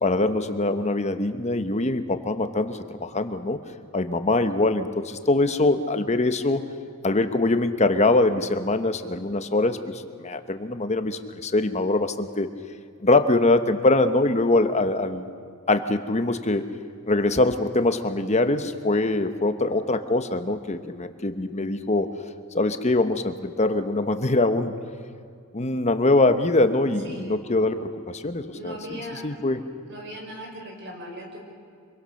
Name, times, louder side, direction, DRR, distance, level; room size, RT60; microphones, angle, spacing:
voice 1, 0.0-3.6 3.9-6.6 7.0-12.5 13.0-15.3 15.7-16.6 17.1-22.1 22.5-24.7 25.5-28.8 29.2-29.6, left 2 dB, 30° left, 9 dB, 1.1 m, -23 dB
voice 2, 27.0-27.4 28.5-29.3 29.9-31.5, equal, 55° right, 1 dB, 5.6 m, -39 dB
26.0 x 23.0 x 6.6 m, 2.3 s
head